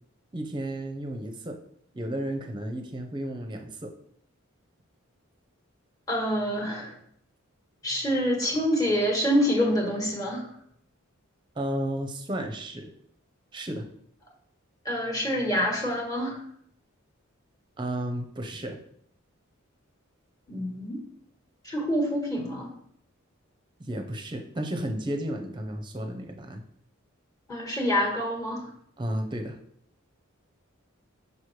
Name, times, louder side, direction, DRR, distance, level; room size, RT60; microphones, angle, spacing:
voice 1, 0.3-1.6 1.9-3.9 11.6-12.9 13.5-13.9 17.8-18.8 23.8-26.6 29.0-29.6, right 1 dB, 20° right, 5 dB, 0.7 m, -33 dB
voice 2, 6.1-7.0 7.8-10.5 14.8-16.4 20.5-21.0 21.6-22.7 27.5-28.7, equal, 15° left, -1 dB, 1.5 m, -26 dB
6.1 x 5.4 x 3.2 m, 0.66 s
head